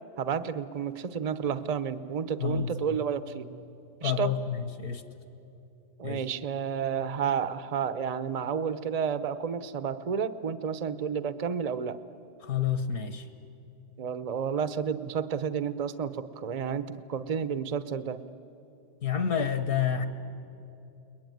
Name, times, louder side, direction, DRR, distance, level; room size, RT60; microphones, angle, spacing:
voice 1, 0.2-3.5 4.0-4.5 6.0-12.0 14.0-18.2, right 7 dB, 55° right, 13 dB, 0.4 m, -31 dB
voice 2, 2.4-2.7 4.0-5.0 6.0-6.2 12.4-13.3 19.0-20.1, left 7 dB, 60° left, 10 dB, 1.6 m, -29 dB
30.0 x 21.5 x 9.3 m, 2.8 s
omnidirectional pair, 1.8 m